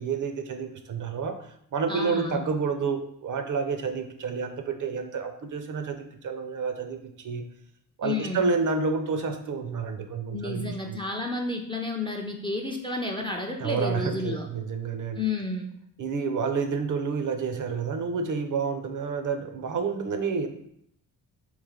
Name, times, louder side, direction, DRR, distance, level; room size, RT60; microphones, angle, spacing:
voice 1, 0.0-1.4 1.7-7.4 8.0-11.0 13.6-15.2 16.0-20.5, right 5 dB, 50° right, 6 dB, 0.6 m, -29 dB
voice 2, 1.9-2.4 8.0-8.5 10.3-14.5 15.1-15.7, left 2 dB, 15° left, 1 dB, 0.4 m, -31 dB
3.2 x 3.0 x 3.6 m, 0.70 s
cardioid pair, 90°, 40 cm